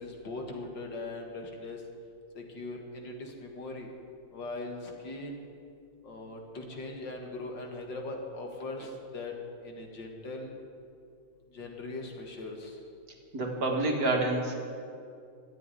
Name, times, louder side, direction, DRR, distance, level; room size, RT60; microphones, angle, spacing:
voice 1, 0.0-1.8 2.3-3.9 4.3-5.4 6.0-9.3 9.6-10.5 11.5-12.8, left 2 dB, 70° left, 2 dB, 2.4 m, -40 dB
voice 2, 13.3-14.5, right 2 dB, 50° right, 0 dB, 2.2 m, -28 dB
13.5 x 8.4 x 9.9 m, 2.4 s
omnidirectional pair, 2.1 m